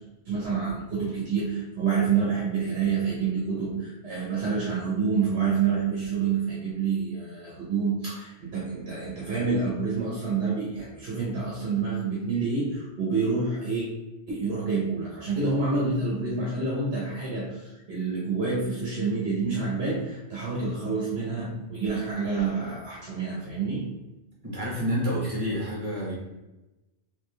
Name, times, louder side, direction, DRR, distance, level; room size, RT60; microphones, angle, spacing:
voice 1, 0.2-13.9 14.3-23.9, right 5 dB, 65° right, -5 dB, 1.3 m, -28 dB
voice 2, 24.4-26.1, equal, 30° right, -6 dB, 1.6 m, -28 dB
3.6 x 3.5 x 3.3 m, 1.0 s
omnidirectional pair, 1.2 m